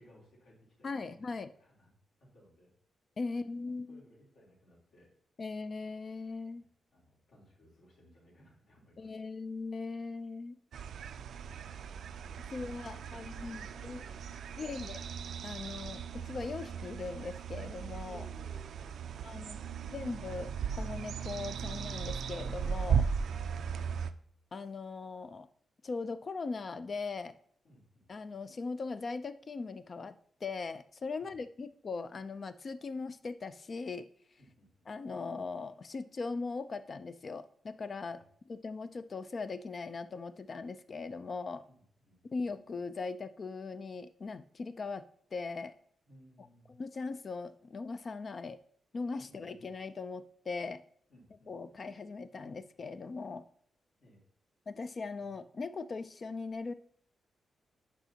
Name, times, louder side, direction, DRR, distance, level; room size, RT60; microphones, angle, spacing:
voice 1, 0.0-1.3 1.6-1.9 2.2-2.7 3.6-5.1 6.6-6.7 6.9-9.1 12.8-15.2 18.1-19.8 23.4-24.0 27.6-28.1 31.1-31.4 34.4-34.9 38.1-38.2 41.7-42.5 46.1-46.7 49.2-49.7 51.1-51.8 54.0-54.2 55.2-55.5, equal, 65° left, -5 dB, 3.4 m, -61 dB
voice 2, 0.8-1.5 3.2-4.0 5.4-6.6 9.0-10.6 12.5-14.0 14.6-15.0 15.4-18.3 19.2-19.6 19.9-23.1 24.5-25.5 25.8-27.4 28.1-30.2 30.4-34.1 34.9-41.6 42.3-45.0 45.3-45.7 46.7-48.6 48.9-50.8 51.5-53.4 54.7-56.7, left 4 dB, 35° left, 12 dB, 0.3 m, -39 dB
sound 1, 10.7-24.1, right 7 dB, 65° right, 0.4 m, -37 dB
10.5 x 5.0 x 2.8 m, 0.63 s
wide cardioid pair, 165°, 0 cm